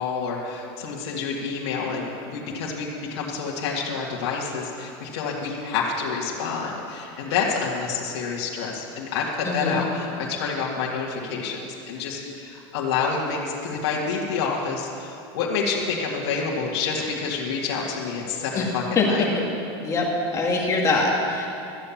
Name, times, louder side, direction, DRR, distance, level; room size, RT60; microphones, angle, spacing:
voice 1, 0.0-11.6 11.9-19.2, left 5 dB, 75° left, -4 dB, 1.9 m, -28 dB
voice 2, 9.4-9.8 18.5-18.7 19.0-19.1 19.8-20.1 20.3-21.5, left 3 dB, 20° left, -2 dB, 2.3 m, -23 dB
13.5 x 8.7 x 7.2 m, 2.7 s
supercardioid pair, 145°, 14 cm